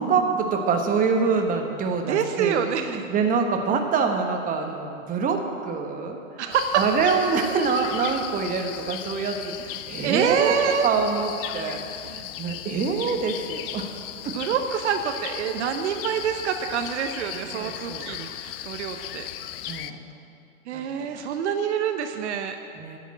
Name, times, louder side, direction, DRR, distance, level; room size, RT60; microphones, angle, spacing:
voice 1, 0.0-6.4 6.8-10.6 10.8-13.9 14.2-14.3 17.5-18.1 19.7-20.0 20.7-21.3 22.8-23.0, right 5 dB, 20° right, 4 dB, 1.2 m, -26 dB
voice 2, 2.1-3.0 6.4-6.8 10.0-10.9 14.3-19.3 19.7-19.9 20.7-22.6, right 8 dB, 60° right, 6 dB, 0.9 m, -26 dB
sound 1, 6.5-19.9, left 12 dB, 45° left, 0.5 m, -37 dB
10.5 x 7.2 x 8.8 m, 2.5 s
hypercardioid pair, 115°, 40 cm